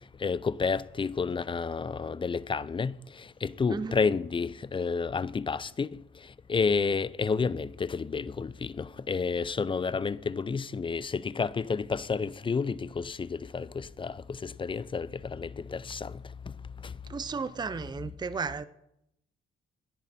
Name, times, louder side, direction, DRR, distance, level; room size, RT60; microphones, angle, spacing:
voice 1, 0.2-6.0 6.5-16.2 16.8-16.9, left 5 dB, 25° left, 0.5 m, -30 dB
voice 2, 17.1-18.6, right 5 dB, 20° right, 0.6 m, -34 dB
17.0 x 10.5 x 4.3 m
cardioid pair, 90°, 20 cm